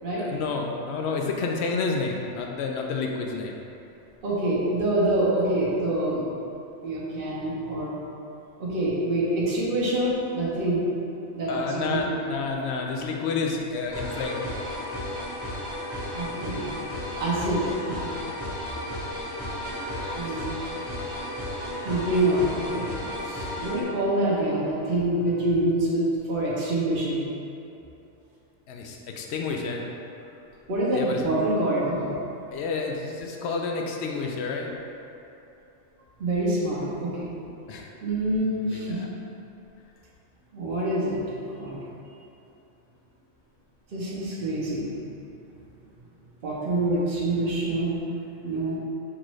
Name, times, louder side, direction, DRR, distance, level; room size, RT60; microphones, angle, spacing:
voice 1, 0.2-3.5 11.5-14.6 20.2-20.3 28.7-29.8 30.9-31.3 32.5-34.7 37.7-37.9 38.7-39.1, left 4 dB, 70° left, 1 dB, 0.8 m, -30 dB
voice 2, 4.2-6.3 6.8-8.0 8.6-10.8 11.3-12.0 16.1-16.7 17.2-18.1 20.1-20.5 21.8-27.2 30.7-32.2 36.2-37.3 38.0-39.0 40.5-41.2 41.5-41.8 43.9-44.9 46.4-48.0 48.4-48.8, right 1 dB, 50° right, -7 dB, 1.0 m, -26 dB
sound 1, 13.9-23.8, left 1 dB, 25° right, 1.0 m, -33 dB
6.0 x 2.5 x 3.1 m, 2.9 s
omnidirectional pair, 1.3 m